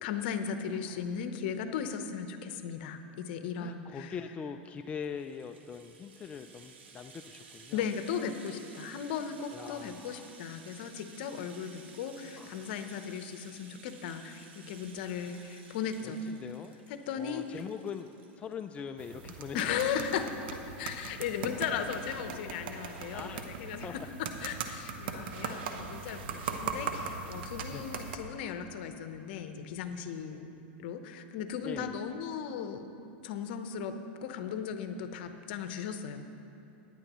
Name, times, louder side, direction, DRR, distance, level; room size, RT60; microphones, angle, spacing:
voice 1, 0.0-4.1 7.7-16.2 16.9-17.4 19.5-24.0 24.4-30.5 30.8-32.8 33.2-33.9 34.2-36.2, left 7 dB, 65° left, 8 dB, 0.8 m, -37 dB
voice 2, 3.6-7.9 9.5-10.4 12.4-12.9 15.3-15.8 16.0-16.8 17.1-18.1 18.4-20.1 23.0-23.9 25.4-25.7 26.3-26.4 27.7-27.9 30.3-30.4 31.6-32.0, left 6 dB, 20° left, 7 dB, 0.3 m, -43 dB
Rattle (instrument), 4.8-18.9 19.2-19.3 19.6-19.7, right 5 dB, 90° right, 1.2 m, -55 dB
sound 1, 19.0-28.2, right 6 dB, 70° right, 0.9 m, -39 dB
16.0 x 9.9 x 3.0 m, 3.0 s
supercardioid pair, 120°, 6 cm